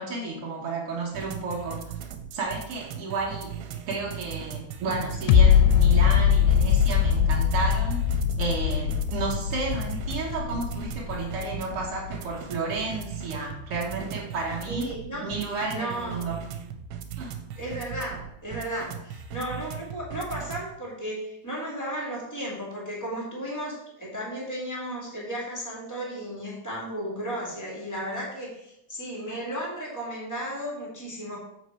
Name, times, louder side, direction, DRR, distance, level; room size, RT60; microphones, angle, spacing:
voice 1, 0.0-1.9 2.3-8.1 8.4-14.9 15.2-16.4 17.2-17.3, right 3 dB, 55° right, -2 dB, 1.7 m, -32 dB
sound 1, 1.1-20.7, right 8 dB, 85° right, 2.5 m, -39 dB
sound 2, 4.9-11.2, left 3 dB, 70° left, 2.0 m, -37 dB
sound 3, 5.3-12.3 12.8-12.9, left 8 dB, 90° left, 2.4 m, -22 dB
voice 2, 14.7-15.3 15.7-16.3 17.6-31.4, right 1 dB, 10° left, -4 dB, 1.1 m, -34 dB
7.3 x 4.8 x 4.4 m, 0.79 s
omnidirectional pair, 4.2 m